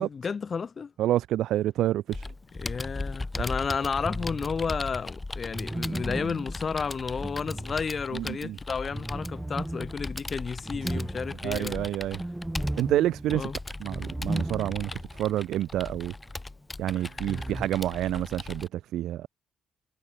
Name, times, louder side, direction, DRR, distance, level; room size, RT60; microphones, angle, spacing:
voice 1, 0.0-0.9 2.5-11.9 13.3-13.5 16.9-17.0 17.3-17.5, left 5 dB, 40° left, 1.6 m, -32 dB
voice 2, 1.0-2.3 8.1-8.6 11.4-12.2 12.8-13.5 13.8-16.1 16.8-19.3, right 13 dB, 80° right, 1.1 m, -28 dB
Computer keyboard, 2.1-18.7, left 2 dB, 15° left, 2.3 m, -38 dB
sound 1, 4.0-4.7 5.5-8.3 8.9-15.1 15.4-15.5 17.3-17.7, right 1 dB, 10° right, 1.1 m, -35 dB
cardioid pair, 95°, 0 cm